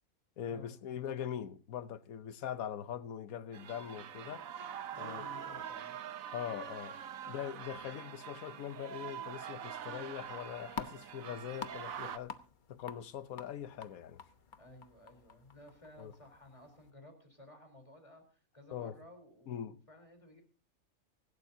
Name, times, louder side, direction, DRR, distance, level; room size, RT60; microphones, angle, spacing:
voice 1, 0.4-4.4 5.0-5.3 6.3-7.0 7.3-12.3 12.7-14.2 16.0-16.1 18.7-19.0 19.5-19.8, left 9 dB, 85° left, 1.3 m, -42 dB
sound 1, 3.5-12.2, right 9 dB, 75° right, 1.3 m, -44 dB
voice 2, 4.9-6.0 14.6-20.4, left 1 dB, 20° left, 3.8 m, -56 dB
sound 2, 10.2-16.9, left 5 dB, 40° left, 0.9 m, -49 dB
25.0 x 12.0 x 2.7 m
omnidirectional pair, 1.5 m